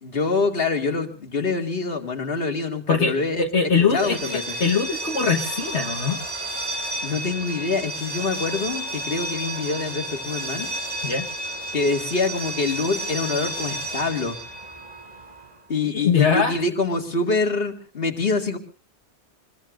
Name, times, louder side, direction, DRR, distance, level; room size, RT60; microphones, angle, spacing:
voice 1, 0.0-3.5 3.9-4.6 7.0-10.7 11.7-14.4 15.7-18.6, left 3 dB, 55° left, 4 dB, 2.3 m, -25 dB
voice 2, 2.9-6.2 11.0-11.3 16.0-16.6, left 6 dB, 75° left, 2 dB, 1.7 m, -22 dB
sound 1, 3.9-15.6, right 1 dB, 35° right, 5.6 m, -32 dB
26.0 x 21.5 x 2.5 m, 0.35 s
omnidirectional pair, 1.2 m